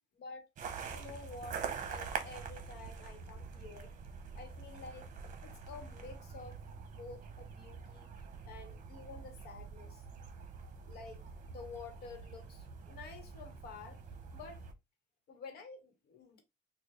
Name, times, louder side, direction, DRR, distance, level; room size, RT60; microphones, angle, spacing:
voice 1, 0.2-0.5 0.9-3.9 4.4-5.1 5.4-6.6 6.9-8.1 8.4-10.0 10.9-14.0 14.3-14.6 15.3-16.4, left 4 dB, 70° left, 1.2 m, -50 dB
sound 1, 0.6-14.7, right 6 dB, 50° right, 0.8 m, -45 dB
3.8 x 2.4 x 3.1 m
cardioid pair, 110°, 17 cm